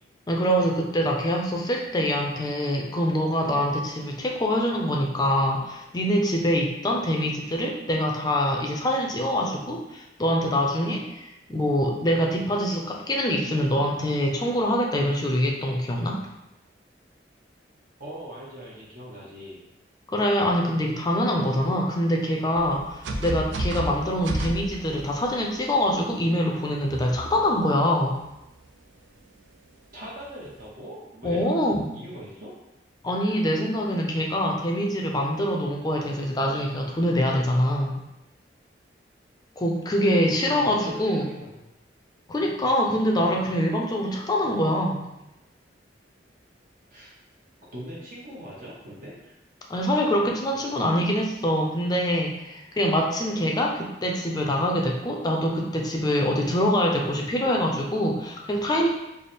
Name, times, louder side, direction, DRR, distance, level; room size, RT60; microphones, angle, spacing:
voice 1, 0.3-16.2 20.1-28.2 31.2-31.9 33.0-38.0 39.6-41.3 42.3-45.0 49.7-58.9, equal, 20° left, 0 dB, 0.5 m, -24 dB
voice 2, 18.0-19.7 29.9-31.5 31.9-32.5 40.2-41.6 46.9-47.1 47.7-49.4, equal, 50° right, -6 dB, 0.7 m, -40 dB
sound 1, 22.6-25.6 26.8-27.7 28.4-28.7 30.2-30.5, right 2 dB, 80° right, 0.4 m, -32 dB
3.3 x 2.0 x 4.1 m, 0.91 s
head